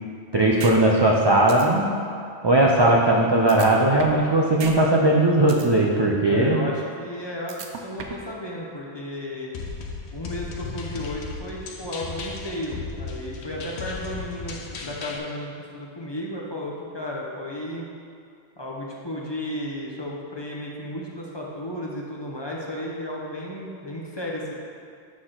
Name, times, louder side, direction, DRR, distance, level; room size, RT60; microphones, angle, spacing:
voice 1, 0.3-1.9 2.4-6.6, right 1 dB, 45° right, -2 dB, 0.3 m, -18 dB
sound 1, 0.6-0.8 1.1-1.2 1.5-1.6 3.5-4.3 4.6-4.8 5.1-5.7 7.5-8.3, right 6 dB, 80° right, 1.0 m, -35 dB
voice 2, 6.2-9.5 10.1-17.9 18.6-24.5, left 1 dB, 25° left, -3 dB, 0.7 m, -34 dB
sound 2, 9.5-15.2, left 4 dB, 70° left, 0.9 m, -36 dB
6.2 x 6.1 x 3.8 m, 2.4 s
omnidirectional pair, 1.2 m